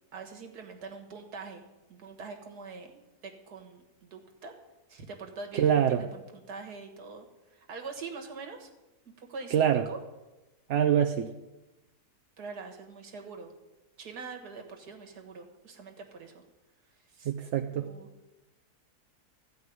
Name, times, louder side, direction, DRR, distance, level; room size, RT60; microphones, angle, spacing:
voice 1, 0.1-1.6 1.9-4.5 4.9-8.7 9.1-10.0 12.4-13.5 14.0-16.4 17.1-17.3 17.9-18.1, right 4 dB, 80° right, 4 dB, 2.0 m, -44 dB
voice 2, 5.5-6.0 9.5-9.8 10.7-11.3 17.2-17.9, right 9 dB, 60° right, 4 dB, 0.8 m, -25 dB
14.0 x 5.4 x 9.3 m, 1.0 s
omnidirectional pair, 1.7 m